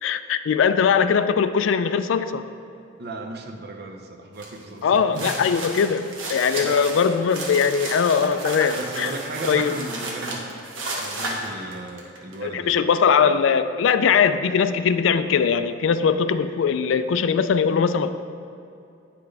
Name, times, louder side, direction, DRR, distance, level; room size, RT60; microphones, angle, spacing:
voice 1, 0.0-2.4 4.8-9.1 9.5-9.7 12.4-18.1, left 6 dB, 75° left, 11 dB, 0.3 m, -21 dB
voice 2, 3.0-5.3 6.6-6.8 8.8-10.6 11.0-12.9, right 2 dB, 55° right, 4 dB, 0.7 m, -35 dB
sound 1, 4.4-4.6 5.0-12.3, right 2 dB, 90° right, 1.2 m, -32 dB
9.9 x 5.9 x 3.3 m, 2.6 s
head